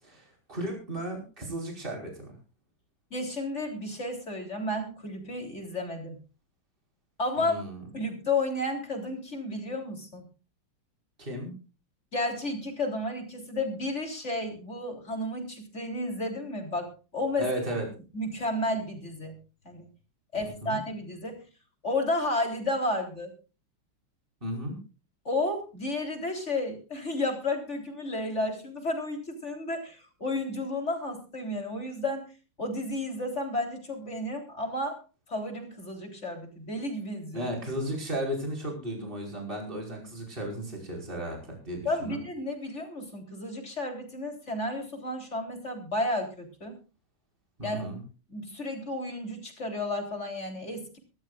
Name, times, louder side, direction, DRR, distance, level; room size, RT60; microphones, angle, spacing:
voice 1, 0.0-2.3 7.4-7.8 11.2-11.5 17.4-17.9 20.3-20.8 24.4-24.8 37.3-42.2 47.6-48.0, right 1 dB, 20° right, 1 dB, 5.4 m, -35 dB
voice 2, 3.1-6.2 7.2-7.5 7.9-10.2 12.1-17.5 18.1-19.4 19.6-19.9 20.3-21.4 21.8-23.3 25.3-32.3 32.6-35.0 35.3-37.5 41.8-46.8 47.6-47.9 48.3-51.0, left 2 dB, 30° left, 3 dB, 3.9 m, -32 dB
23.5 x 13.5 x 2.5 m, 0.33 s
omnidirectional pair, 2.4 m